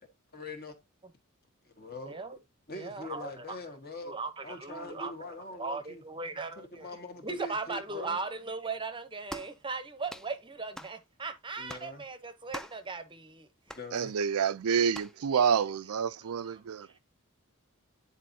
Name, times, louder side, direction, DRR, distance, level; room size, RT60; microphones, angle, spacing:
voice 1, 0.3-0.7 1.6-2.2 2.7-4.2 4.4-6.0 6.6-8.2 11.6-12.0 13.7-14.1 16.2-16.3, left 2 dB, 45° left, 1.7 m, -43 dB
voice 2, 2.1-2.4 2.7-3.6 4.0-5.1 5.4-6.9 7.2-13.8 16.4-17.0, right 4 dB, 20° right, 0.8 m, -38 dB
sound 1, 9.3-9.6 10.1-10.3 10.8-11.0 11.7-11.9 12.5-12.8 13.7-13.9 14.9-15.2, equal, ahead, 0.4 m, -43 dB
voice 3, 13.9-16.9, right 7 dB, 75° right, 0.4 m, -28 dB
10.0 x 4.2 x 2.7 m
head